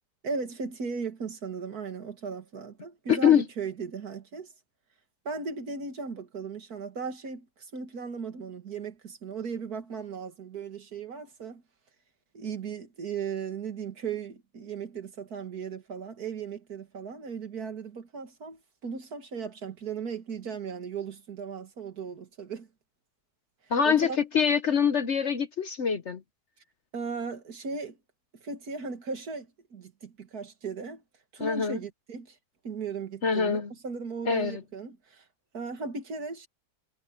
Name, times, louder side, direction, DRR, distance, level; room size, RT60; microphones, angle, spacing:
voice 1, 0.2-4.5 5.3-11.6 12.3-22.7 23.8-24.2 26.9-28.0 28.4-31.0 31.3-32.4 32.6-35.2 35.5-36.5, right 5 dB, 65° right, 2.4 m, -37 dB
voice 2, 3.1-3.4 23.7-26.2 31.4-31.8 33.2-33.7 34.3-34.6, left 7 dB, 50° left, 1.1 m, -24 dB
omnidirectional pair, 1.7 m